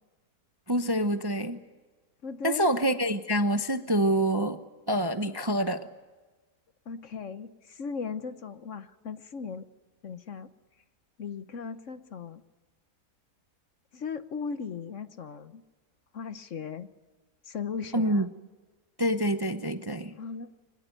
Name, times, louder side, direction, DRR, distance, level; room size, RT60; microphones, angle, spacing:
voice 1, 0.7-1.6 2.4-4.6 4.9-5.9 17.9-18.3 19.0-20.2, right 1 dB, 20° right, 9 dB, 0.6 m, -26 dB
voice 2, 2.2-2.7 6.9-9.7 10.0-10.5 11.2-12.4 13.9-15.6 16.1-16.9 17.4-18.3 20.2-20.6, left 5 dB, 55° left, 12 dB, 1.2 m, -37 dB
23.0 x 21.0 x 9.3 m, 1.3 s
omnidirectional pair, 1.7 m